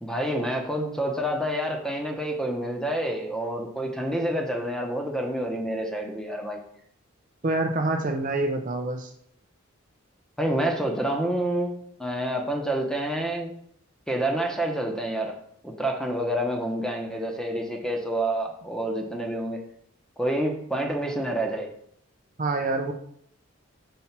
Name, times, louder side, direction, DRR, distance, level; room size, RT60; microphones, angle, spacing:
voice 1, 0.0-6.6 10.4-13.5 14.1-15.4 15.6-19.6 20.2-21.7, right 1 dB, 5° left, 2 dB, 0.9 m, -28 dB
voice 2, 7.4-9.1 22.4-22.9, right 2 dB, 40° right, 4 dB, 0.6 m, -26 dB
5.7 x 4.3 x 5.9 m, 0.67 s
head